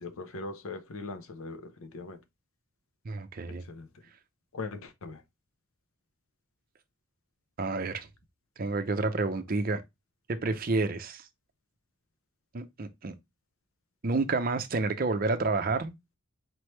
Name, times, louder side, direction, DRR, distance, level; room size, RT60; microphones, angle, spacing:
voice 1, 0.0-2.2 3.7-3.9 4.5-5.2, left 3 dB, 70° left, 0.6 m, -40 dB
voice 2, 3.0-3.6 7.6-8.1 8.6-9.8 10.3-11.2 12.5-13.1 14.0-15.9, right 3 dB, 40° right, 0.5 m, -29 dB
4.4 x 3.1 x 3.1 m
head